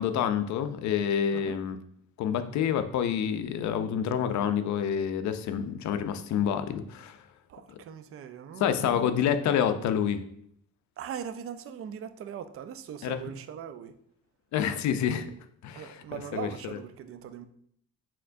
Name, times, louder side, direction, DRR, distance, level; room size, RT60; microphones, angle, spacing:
voice 1, 0.0-1.8 2.2-7.2 8.6-10.2 13.0-13.3 14.5-15.3 15.6-16.5, left 8 dB, 70° left, 10 dB, 0.5 m, -28 dB
voice 2, 7.5-9.4 11.0-13.9 15.7-17.5, right 8 dB, 50° right, 11 dB, 0.4 m, -40 dB
4.4 x 3.6 x 2.5 m, 0.68 s
cardioid pair, 90°, 30 cm